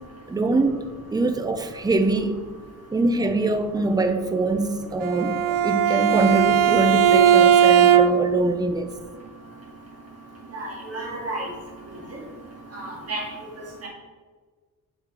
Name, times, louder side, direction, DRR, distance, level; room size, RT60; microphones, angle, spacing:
voice 1, 0.3-0.7 1.1-2.4 2.9-8.9, right 2 dB, 10° right, 7 dB, 0.4 m, -23 dB
Bowed string instrument, 5.0-8.4, right 9 dB, 70° right, 0.5 m, -18 dB
voice 2, 10.5-11.5 12.7-13.2 13.8-13.9, right 2 dB, 45° right, -2 dB, 1.6 m, -31 dB
7.0 x 4.6 x 3.7 m, 1.5 s
wide cardioid pair, 150°, 35 cm